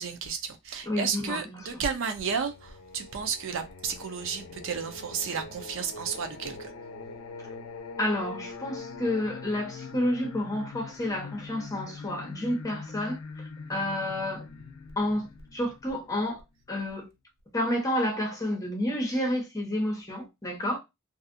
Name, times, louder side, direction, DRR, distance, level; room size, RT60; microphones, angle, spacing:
voice 1, 0.0-6.7, right 6 dB, 65° right, 0.5 m, -32 dB
voice 2, 0.9-1.7 8.0-13.2 13.7-14.4 15.0-15.3 15.5-16.4 16.7-17.1 17.5-20.8, left 1 dB, 15° left, 0.9 m, -30 dB
Singing, 2.2-16.9, left 4 dB, 70° left, 0.5 m, -43 dB
2.6 x 2.4 x 2.5 m
head